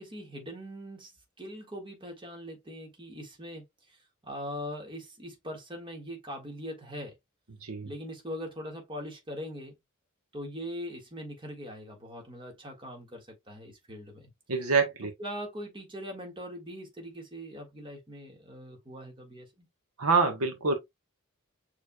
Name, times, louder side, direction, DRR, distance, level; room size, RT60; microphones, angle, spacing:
voice 1, 0.0-7.1 7.8-9.7 10.3-14.3 15.2-19.7, equal, 25° right, 1.6 m, -41 dB
voice 2, 14.5-15.1 20.0-20.7, right 4 dB, 75° right, 1.1 m, -26 dB
6.6 x 3.3 x 2.2 m
head